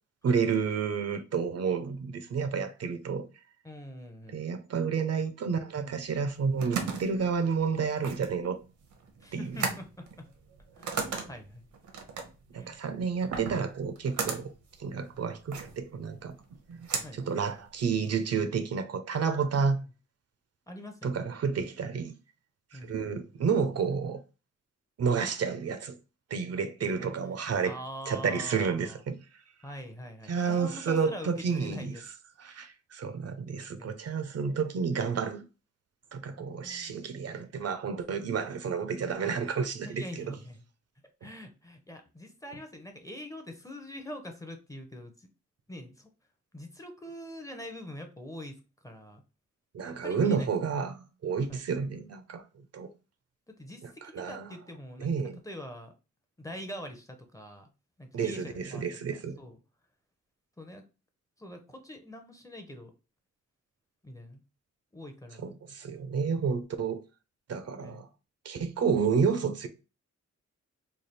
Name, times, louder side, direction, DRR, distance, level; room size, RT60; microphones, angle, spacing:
voice 1, 0.2-3.2 4.3-8.6 9.3-9.6 12.5-14.5 14.8-16.4 16.7-19.8 21.0-22.1 22.7-24.2 25.0-26.0 26.3-27.7 28.1-29.2 30.3-31.9 32.4-35.4 36.1-40.3 49.7-52.4 52.7-52.9 53.8-54.5 55.0-55.4 58.1-59.4 65.4-67.0 67.5-68.1 68.4-69.7, right 6 dB, 55° right, 0.5 m, -30 dB
voice 2, 3.6-4.4 9.2-10.2 10.7-11.6 12.5-12.8 17.0-17.2 19.5-19.7 20.7-21.3 22.7-23.1 25.1-25.2 27.0-27.1 27.6-29.0 29.6-32.0 33.8-34.0 36.4-37.0 39.9-40.6 41.2-45.3 45.7-46.1 46.5-48.6 48.8-49.2 49.8-50.8 51.5-51.7 53.5-55.1 55.4-55.9 56.4-57.7 58.0-58.8 59.1-59.6 60.6-60.8 61.4-62.9 64.0-64.4 64.9-65.5 67.8-68.1, left 1 dB, 10° left, 0.6 m, -44 dB
sound 1, 6.2-18.1, right 5 dB, 85° right, 0.9 m, -37 dB
3.3 x 2.3 x 4.1 m
wide cardioid pair, 140°, 29 cm